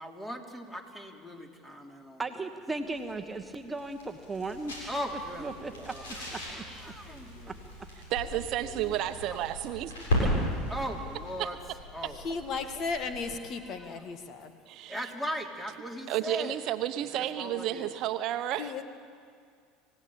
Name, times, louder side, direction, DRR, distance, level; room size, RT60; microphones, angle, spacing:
voice 1, 0.0-2.3 4.9-7.6 8.3-9.4 10.7-11.6 11.9-14.2 14.9-16.6 17.0-17.9, equal, 10° left, 2 dB, 3.4 m, -40 dB
voice 2, 2.2-4.8 5.4-5.9 6.3-6.9 7.5-7.6, right 3 dB, 15° right, 5 dB, 1.3 m, -36 dB
sound 1, 2.7-13.4, left 1 dB, 80° left, 7.6 m, -36 dB
voice 3, 8.1-9.9 11.4-11.5 12.0-12.1 14.7-15.0 16.1-18.8, right 12 dB, 55° right, 10 dB, 0.9 m, -32 dB
voice 4, 12.2-14.5 18.6-18.8, left 4 dB, 50° left, 8 dB, 1.7 m, -35 dB
27.0 x 17.0 x 8.8 m, 2.2 s
hypercardioid pair, 75°, 0 cm